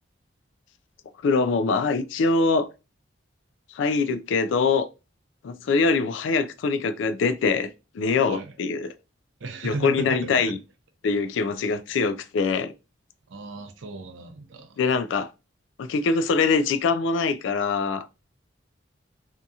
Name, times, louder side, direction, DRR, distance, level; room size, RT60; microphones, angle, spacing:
voice 1, 1.2-2.7 3.7-4.9 5.4-7.7 7.9-8.9 9.6-10.6 11.0-12.7 14.8-15.3 15.8-18.1, left 4 dB, 70° left, 0.3 m, -23 dB
voice 2, 9.4-10.5 13.3-14.8, right 3 dB, 80° right, 0.6 m, -35 dB
2.8 x 2.6 x 2.3 m
head